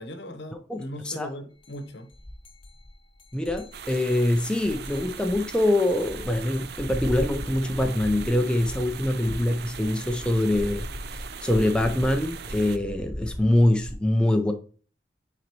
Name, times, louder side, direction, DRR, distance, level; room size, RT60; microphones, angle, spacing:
voice 1, 0.0-2.1, left 1 dB, 75° left, 0.9 m, -39 dB
voice 2, 0.7-1.3 3.3-14.5, left 1 dB, 5° left, 0.4 m, -24 dB
sound 1, 1.6-1.8 2.1-13.9, left 1 dB, 30° left, 0.8 m, -38 dB
sound 2, 3.7-12.8, right 8 dB, 60° right, 0.4 m, -41 dB
9.2 x 3.9 x 3.0 m
head